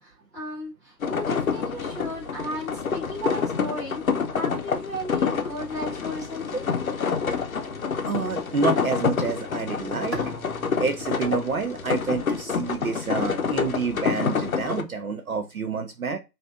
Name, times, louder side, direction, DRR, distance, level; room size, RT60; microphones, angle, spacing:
voice 1, 0.0-4.0 4.3-6.6, equal, 10° right, -11 dB, 1.3 m, -34 dB
sound 1, 1.0-14.8, left 5 dB, 55° left, 0.7 m, -27 dB
voice 2, 8.0-10.2 10.8-16.2, right 4 dB, 60° right, 6 dB, 0.6 m, -28 dB
Bowed string instrument, 10.1-13.1, right 3 dB, 80° right, 1.1 m, -42 dB
5.3 x 2.6 x 2.4 m, 0.24 s
hypercardioid pair, 170°, 49 cm